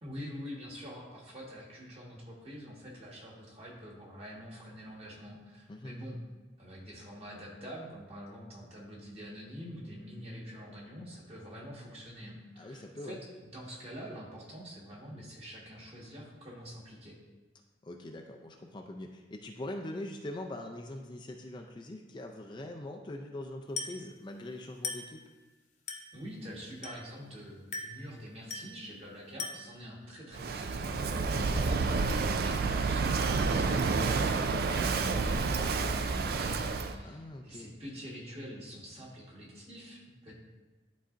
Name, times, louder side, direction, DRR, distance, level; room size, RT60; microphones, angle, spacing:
voice 1, 0.0-6.2 6.6-17.2 26.1-31.9 32.4-40.3, equal, 35° right, -4 dB, 1.5 m, -46 dB
voice 2, 12.6-13.2 17.8-25.2 30.9-31.6 37.0-37.7, left 1 dB, 25° left, 2 dB, 0.4 m, -42 dB
Glass, 23.8-24.1 24.8-25.2 25.9-26.2 26.8-27.2 27.7-28.1 28.5-28.8 29.4-29.8, left 4 dB, 40° left, 0.9 m, -39 dB
Walk footsteps / Wind / Waves surf, 30.3-37.0, right 4 dB, 55° right, 0.4 m, -29 dB
11.5 x 4.1 x 2.5 m, 1.2 s
head